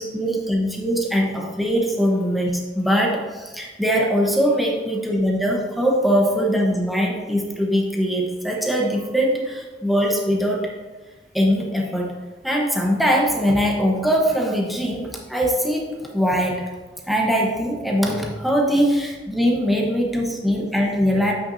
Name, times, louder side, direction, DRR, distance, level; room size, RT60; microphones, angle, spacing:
voice 1, 0.0-10.7 11.3-12.1 12.4-16.6 17.1-21.3, equal, ahead, -2 dB, 1.0 m, -21 dB
8.4 x 5.9 x 2.7 m, 1.3 s
head